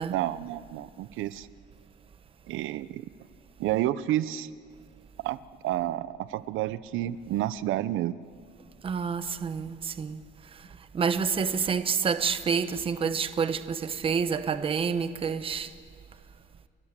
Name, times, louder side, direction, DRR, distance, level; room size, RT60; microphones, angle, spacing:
voice 1, 0.1-1.5 2.5-3.0 3.6-4.5 5.2-8.2, right 13 dB, 85° right, 0.7 m, -30 dB
voice 2, 8.8-10.2 10.9-15.7, right 6 dB, 25° right, 0.9 m, -28 dB
30.0 x 22.0 x 7.4 m
cardioid pair, 175°, 20 cm